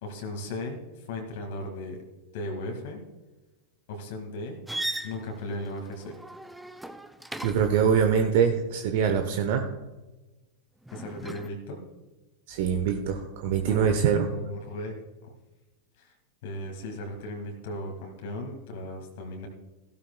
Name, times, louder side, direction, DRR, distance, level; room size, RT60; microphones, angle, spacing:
voice 1, 0.0-2.0 2.3-3.0 3.9-4.6 5.0-6.2 10.9-11.8 13.7-14.9 15.2-15.3 16.0-16.1 16.4-19.5, left 1 dB, 50° left, 2 dB, 1.9 m, -36 dB
sound 1, 4.7-7.8 10.8-11.5, right 2 dB, 5° right, 0.6 m, -37 dB
voice 2, 7.4-9.7 12.5-14.3, right 7 dB, 50° right, 6 dB, 0.9 m, -24 dB
15.5 x 12.5 x 2.3 m, 1.1 s
figure-of-eight pair, 90°, 0 cm